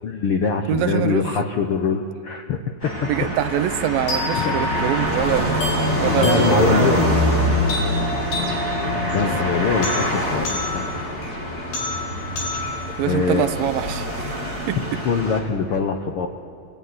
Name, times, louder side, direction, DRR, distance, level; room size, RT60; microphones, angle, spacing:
voice 1, 0.0-3.1 4.3-4.5 6.2-7.1 9.1-10.9 13.1-13.5 15.0-16.3, left 5 dB, 85° left, 5 dB, 1.2 m, -23 dB
voice 2, 0.7-1.3 3.0-7.2 8.9-9.1 9.4-9.5 13.0-15.0, right 11 dB, 80° right, 11 dB, 2.6 m, -25 dB
sound 1, 2.8-15.4, left 1 dB, 25° left, 3.5 m, -24 dB
sound 2, 4.1-14.1, left 1 dB, 65° left, 5.7 m, -31 dB
28.0 x 17.5 x 9.6 m, 2.4 s
omnidirectional pair, 4.1 m